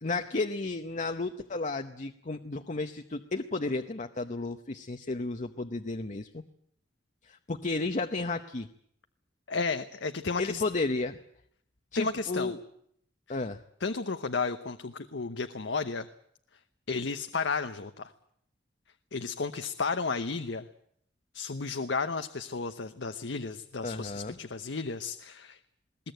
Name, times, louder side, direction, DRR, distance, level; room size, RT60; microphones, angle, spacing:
voice 1, 0.0-6.4 7.2-8.7 10.4-11.2 11.9-12.6 13.3-13.6 23.8-24.4, left 3 dB, 45° left, 6 dB, 0.9 m, -33 dB
voice 2, 9.5-10.6 11.9-12.6 13.8-16.1 16.9-18.1 19.1-20.7 21.3-25.6, left 4 dB, 75° left, 9 dB, 0.9 m, -33 dB
21.0 x 18.0 x 9.2 m, 0.70 s
head